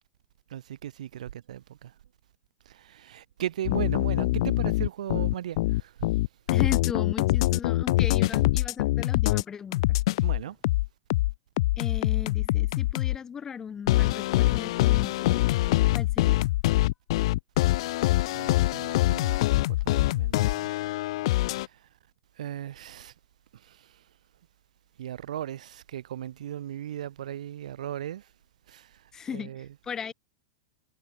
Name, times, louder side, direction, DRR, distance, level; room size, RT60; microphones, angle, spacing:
voice 1, 0.5-1.9 2.6-6.1 10.2-10.6 18.3-19.4 19.7-20.7 21.3-21.9 22.4-23.1 23.5-24.0 25.0-28.3 28.7-29.0 29.3-29.7, right 11 dB, 90° right, 4.4 m, -37 dB
sound 1, 3.6-9.4 9.7-13.2 13.9-21.7, left 17 dB, 55° left, 1.0 m, -24 dB
voice 2, 6.5-9.8 11.8-15.4 15.9-16.5 29.1-30.1, left 7 dB, 15° left, 3.5 m, -37 dB
supercardioid pair, 170°, 4 cm